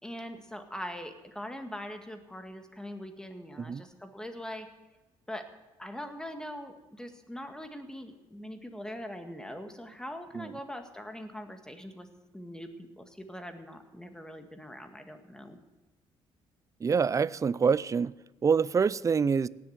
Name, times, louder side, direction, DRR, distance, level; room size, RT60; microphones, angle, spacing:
voice 1, 0.0-4.7 5.3-5.5 5.8-12.1 12.3-15.6, equal, 5° left, 1.9 m, -42 dB
voice 2, 16.8-18.1 18.4-19.5, right 6 dB, 30° right, 0.4 m, -26 dB
18.0 x 7.6 x 8.1 m
cardioid pair, 95°, 11 cm